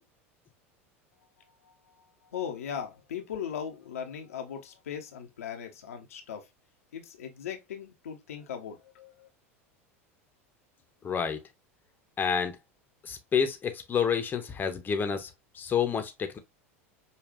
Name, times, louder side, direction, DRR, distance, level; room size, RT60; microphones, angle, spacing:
voice 1, 1.6-2.0 2.3-6.5 6.9-9.3, left 8 dB, 80° left, 0.7 m, -39 dB
voice 2, 11.0-11.4 12.2-12.6 13.0-16.4, left 7 dB, 25° left, 0.7 m, -29 dB
5.2 x 2.3 x 2.4 m
hypercardioid pair, 85°, 8 cm